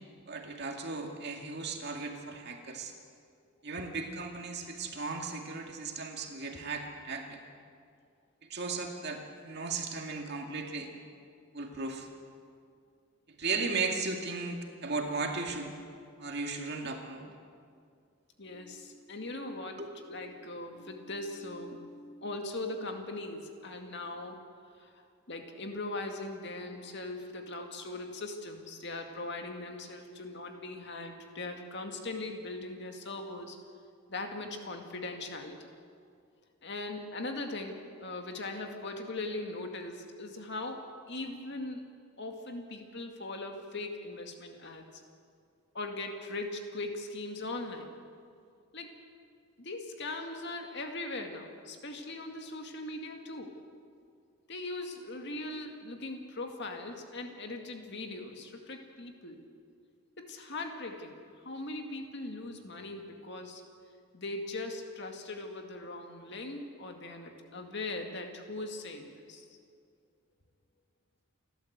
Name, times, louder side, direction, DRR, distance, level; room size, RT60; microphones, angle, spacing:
voice 1, 0.3-2.9 3.6-7.4 8.5-10.9 11.5-12.1 13.4-15.8 16.2-17.3 19.8-19.9, right 4 dB, 50° right, 2 dB, 2.3 m, -36 dB
voice 2, 18.4-24.4 24.8-25.0 25.3-33.6 34.1-35.6 36.6-41.8 42.2-45.0 45.7-47.9 48.7-48.9 49.6-53.6 54.5-59.4 60.2-63.6 64.1-69.5, left 2 dB, 50° left, 4 dB, 2.1 m, -40 dB
29.0 x 12.5 x 8.1 m, 2.2 s
head